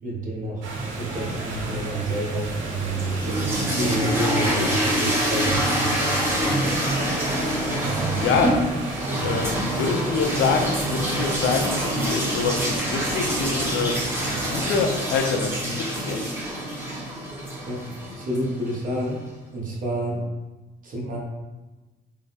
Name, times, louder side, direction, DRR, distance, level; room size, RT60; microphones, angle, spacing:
voice 1, 0.0-0.7 1.0-6.5 7.7-8.2 9.1-9.3 17.6-19.2 19.5-20.2 20.8-21.2, right 2 dB, 45° right, -2 dB, 1.0 m, -29 dB
sound 1, 0.6-14.8, right 2 dB, 80° right, 0.8 m, -33 dB
sound 2, 2.8-18.8, equal, 10° right, 1.0 m, -26 dB
voice 2, 8.2-8.6 9.2-16.3, left 5 dB, 75° left, 4 dB, 0.5 m, -26 dB
3.6 x 2.1 x 4.0 m, 1.2 s
cardioid pair, 120°, 20 cm